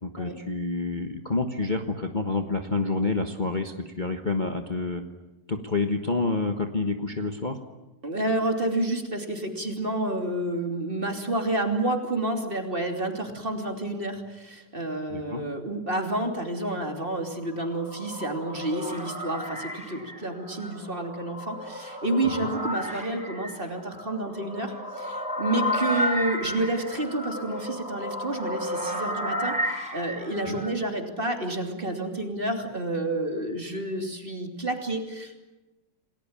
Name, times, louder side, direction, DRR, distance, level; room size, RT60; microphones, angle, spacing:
voice 1, 0.0-5.0 5.5-7.6 15.1-15.4 22.2-22.5 30.5-30.6, left 3 dB, 30° left, 5 dB, 1.5 m, -28 dB
voice 2, 8.0-35.4, right 1 dB, 30° right, 4 dB, 3.2 m, -29 dB
sound 1, 17.3-30.7, equal, 5° right, 5.3 m, -33 dB
28.5 x 19.5 x 8.9 m, 1.1 s
omnidirectional pair, 1.9 m